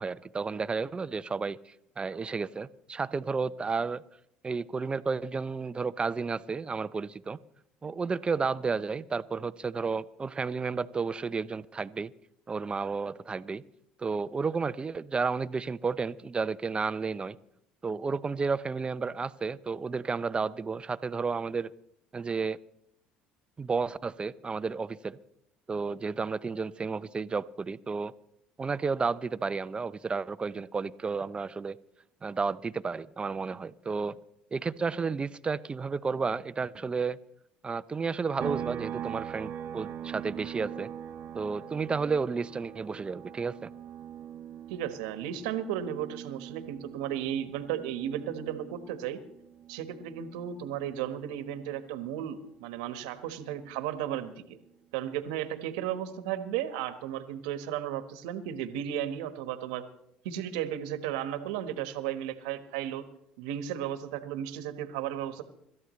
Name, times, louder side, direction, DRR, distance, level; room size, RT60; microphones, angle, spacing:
voice 1, 0.0-4.0 4.4-7.4 7.8-12.1 12.5-13.6 14.0-17.4 17.8-21.7 22.1-22.6 23.6-25.2 25.7-28.1 28.6-31.8 32.2-34.2 34.5-37.2 37.6-40.9 41.3-43.7, right 4 dB, 25° right, 16 dB, 0.7 m, -32 dB
sound 1, 38.4-51.9 52.3-54.5, right 9 dB, 55° right, 0.8 m, -42 dB
voice 2, 44.7-49.2 49.7-54.4 54.9-59.8 60.2-63.0 63.4-65.4, right 10 dB, 80° right, 10 dB, 1.4 m, -34 dB
26.5 x 13.0 x 3.2 m, 0.74 s
hypercardioid pair, 70°, 4 cm